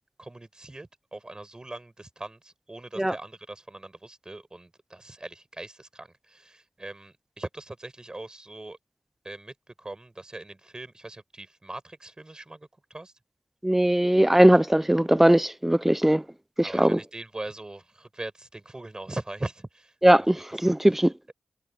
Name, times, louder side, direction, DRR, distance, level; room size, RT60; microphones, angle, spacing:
voice 1, 0.2-8.8 9.2-13.1 16.6-20.3, right 2 dB, 25° right, 6.6 m, -41 dB
voice 2, 13.6-16.2 16.6-17.0 20.0-21.1, right 1 dB, 10° right, 0.6 m, -20 dB
cardioid pair, 45°, 3 cm